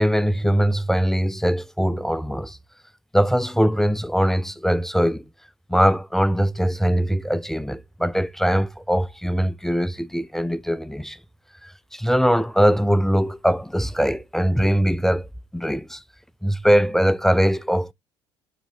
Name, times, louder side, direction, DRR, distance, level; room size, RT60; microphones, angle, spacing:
voice 1, 0.0-2.6 3.1-5.3 5.7-11.2 11.6-15.3 15.5-16.0 16.4-17.9, equal, 5° left, 0.4 m, -21 dB
7.2 x 3.7 x 4.0 m
figure-of-eight pair, 55°, 15 cm